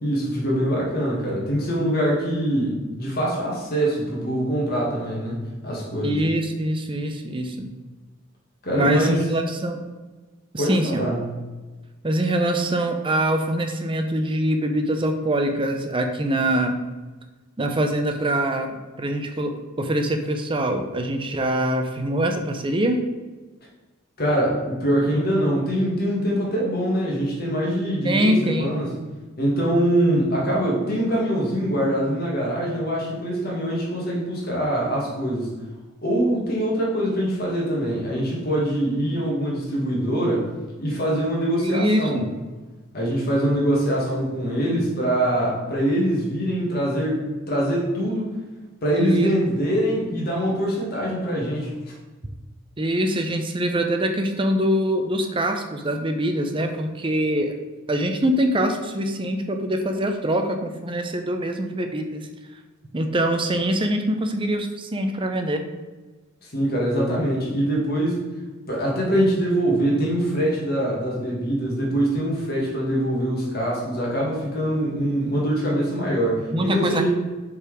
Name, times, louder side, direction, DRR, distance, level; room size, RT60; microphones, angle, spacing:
voice 1, 0.0-6.2 8.6-9.2 10.6-11.4 24.2-28.3 28.6-28.9 29.4-35.5 36.0-40.5 40.8-42.2 42.9-48.3 48.8-51.9 66.5-68.2 68.7-77.1, right 1 dB, 50° left, -4 dB, 1.8 m, -23 dB
voice 2, 6.0-7.7 8.7-9.8 10.5-11.1 12.0-16.8 17.6-23.0 28.0-28.9 41.6-42.3 48.9-49.3 52.8-57.5 57.9-62.3 62.9-65.6 76.5-77.1, right 1 dB, 25° right, 5 dB, 0.6 m, -24 dB
5.4 x 4.1 x 4.9 m, 1.2 s
head